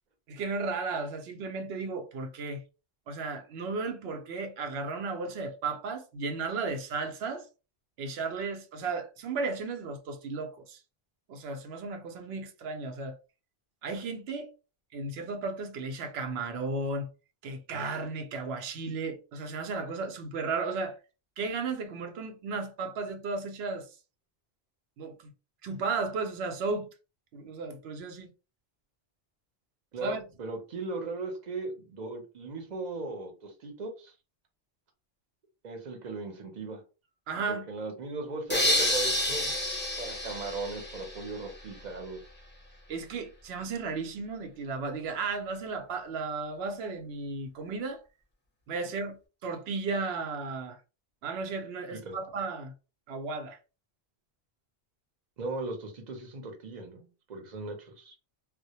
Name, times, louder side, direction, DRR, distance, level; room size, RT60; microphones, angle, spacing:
voice 1, 0.3-2.6 3.1-7.5 8.0-10.8 11.3-13.2 13.8-14.5 14.9-17.1 17.4-21.0 21.4-23.9 25.0-25.3 25.6-26.9 27.3-28.3 30.0-30.2 37.3-37.7 42.9-48.0 48.7-49.2 49.4-50.8 51.2-52.7 53.1-53.6, right 4 dB, 85° right, 0.8 m, -34 dB
voice 2, 29.9-34.1 35.6-36.8 37.5-39.5 40.0-42.2 51.9-52.2 55.4-58.2, right 3 dB, 50° right, 0.7 m, -38 dB
sound 1, 38.5-41.5, left 1 dB, 20° left, 0.3 m, -29 dB
2.1 x 2.1 x 2.7 m
omnidirectional pair, 1.0 m